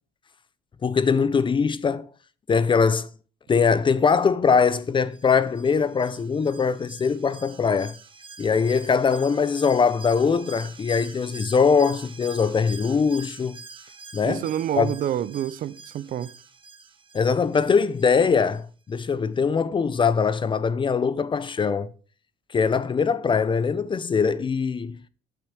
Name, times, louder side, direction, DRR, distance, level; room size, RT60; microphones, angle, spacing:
voice 1, 0.8-2.1 2.5-3.1 3.5-7.9 8.4-13.6 14.1-14.4 14.8-14.9 17.1-21.9 22.5-25.0, left 5 dB, 30° left, 0.6 m, -22 dB
Alarm, 5.1-18.6 18.9-19.0, right 4 dB, 30° right, 1.4 m, -45 dB
voice 2, 14.2-16.3, right 10 dB, 55° right, 0.6 m, -28 dB
8.8 x 8.4 x 5.0 m
cardioid pair, 110°, 17 cm